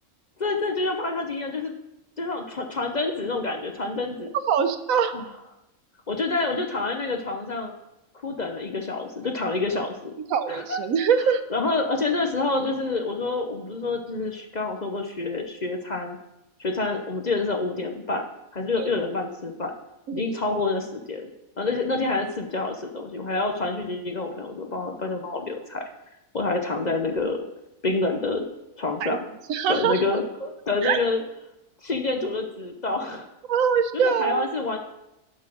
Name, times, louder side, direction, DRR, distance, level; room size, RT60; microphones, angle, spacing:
voice 1, 0.4-1.7 2.2-4.3 5.1-5.3 6.1-7.7 8.2-10.1 10.5-10.8 11.5-16.2 16.6-18.3 18.5-19.7 20.1-21.3 21.6-25.8 26.3-27.4 27.8-28.4 28.8-29.2 29.7-31.2 31.8-33.3 33.9-34.8, left 3 dB, 40° left, 4 dB, 0.7 m, -27 dB
voice 2, 4.5-5.1 10.3-11.4 18.8-18.9 20.1-20.4 29.0-29.2 29.5-29.9 30.8-31.0 33.5-34.5, right 7 dB, 85° right, 10 dB, 1.1 m, -23 dB
11.0 x 4.2 x 6.2 m, 0.92 s
omnidirectional pair, 1.4 m